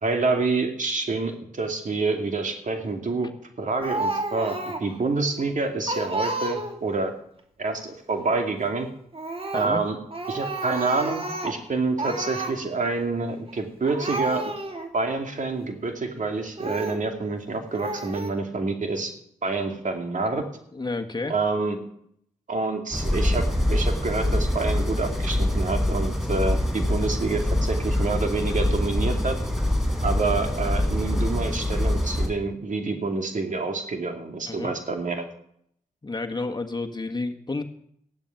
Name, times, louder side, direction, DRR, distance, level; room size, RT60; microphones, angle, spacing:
voice 1, 0.0-3.3 3.6-7.1 7.6-8.9 9.5-10.0 10.3-14.5 14.9-19.1 19.4-20.4 21.3-21.8 22.5-29.4 30.0-35.2, right 3 dB, 60° right, 4 dB, 2.6 m, -27 dB
Speech, 3.8-5.0 5.4-5.5 5.9-6.9 9.1-9.8 10.1-11.7 12.0-12.6 13.5-13.6 13.8-14.9 15.5-15.6 16.6-17.0 17.7-18.3, right 2 dB, 40° right, 2.4 m, -31 dB
voice 2, 20.7-21.3 34.5-34.7 36.0-37.6, left 3 dB, 30° left, 5 dB, 1.6 m, -30 dB
sound 1, 22.9-32.3, left 1 dB, 5° right, 4.1 m, -24 dB
15.0 x 11.0 x 5.9 m, 0.70 s
supercardioid pair, 40°, 15 cm